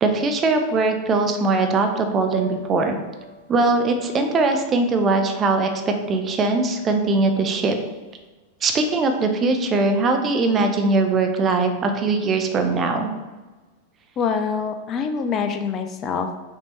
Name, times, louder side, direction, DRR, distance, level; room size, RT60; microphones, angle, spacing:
voice 1, 0.0-3.0 3.5-7.8 8.6-13.1, right 3 dB, 25° right, 5 dB, 0.6 m, -21 dB
Piano, 2.3-8.2, right 1 dB, 75° left, 0.8 m, -42 dB
voice 2, 14.2-16.4, left 6 dB, 30° left, 7 dB, 0.4 m, -25 dB
5.9 x 2.7 x 3.1 m, 1.3 s
figure-of-eight pair, 90°, 0 cm